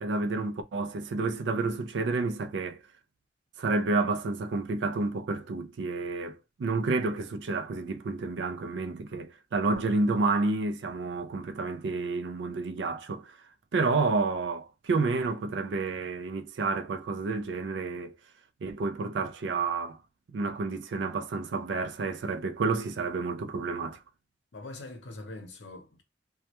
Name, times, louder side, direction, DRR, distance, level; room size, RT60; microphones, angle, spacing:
voice 1, 0.0-2.8 3.6-13.4 13.7-18.2 18.6-20.0 20.3-24.0, right 3 dB, 80° right, 0.4 m, -30 dB
voice 2, 24.5-26.0, left 2 dB, 80° left, 0.7 m, -43 dB
2.3 x 2.1 x 2.8 m
head